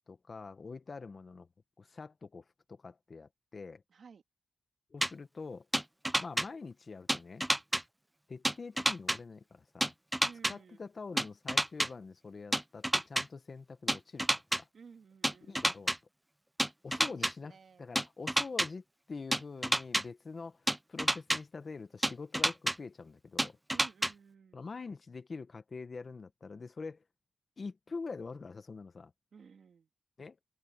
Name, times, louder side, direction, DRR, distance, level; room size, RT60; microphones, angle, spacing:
voice 1, 0.1-1.5 1.8-3.8 4.9-5.7 6.2-7.5 8.3-9.9 10.5-14.7 15.5-15.9 16.8-23.6 24.5-27.0 27.6-29.1 30.2-30.4, left 4 dB, 50° left, 1.1 m, -45 dB
voice 2, 3.9-4.2 10.2-10.9 14.7-15.7 17.0-18.0 23.7-24.6 29.3-29.9, right 6 dB, 75° right, 3.0 m, -55 dB
sound 1, 5.0-5.1 5.7-6.5 7.1-7.8 8.4-9.2 9.8-10.5 11.2-11.9 12.5-13.2 13.9-14.6 15.2-16.0 16.6-17.3 18.0-18.7 19.3-20.0 20.7-21.4 22.0-22.7 23.4-24.1, right 1 dB, 10° right, 0.4 m, -28 dB
open air
cardioid pair, 80°, 0 cm